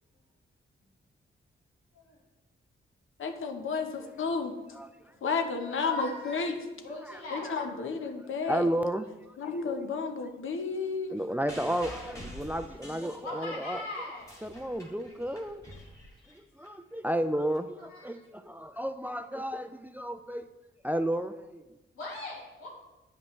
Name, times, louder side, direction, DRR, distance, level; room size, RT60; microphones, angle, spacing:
voice 1, 3.2-4.5 5.2-6.6 7.3-8.7 9.4-11.2, left 4 dB, 70° left, 5 dB, 0.8 m, -32 dB
voice 2, 4.7-5.1 7.0-7.5 8.5-9.3 11.1-13.9 14.4-15.6 16.3-20.5 20.8-21.6, right 1 dB, 10° right, 10 dB, 0.3 m, -33 dB
voice 3, 5.8-6.5 6.8-7.5 13.2-14.3 17.9-18.2 22.0-22.7, left 2 dB, 85° left, -6 dB, 1.9 m, -40 dB
sound 1, 11.5-13.7 14.1-16.7 17.5-17.6, equal, 15° left, 1.9 m, -47 dB
8.5 x 5.3 x 3.1 m, 1.0 s
cardioid pair, 85°, 21 cm